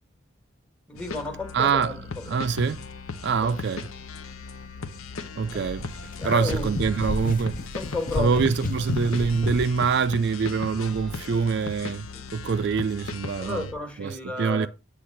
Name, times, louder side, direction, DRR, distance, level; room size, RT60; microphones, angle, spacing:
sound 1, 0.9-13.7, left 4 dB, 85° left, 0.9 m, -38 dB
voice 1, 0.9-2.4 3.4-3.5 5.5-5.7 6.2-6.8 7.7-8.4 12.1-12.3 13.4-14.7, left 2 dB, 5° left, 1.4 m, -33 dB
voice 2, 1.5-1.9 2.3-2.8 3.2-3.9 5.4-5.9 6.2-7.6 8.2-13.7 14.0-14.7, right 5 dB, 55° right, 0.3 m, -25 dB
sound 2, 5.5-9.8, left 3 dB, 40° left, 0.5 m, -32 dB
8.1 x 3.4 x 5.7 m
head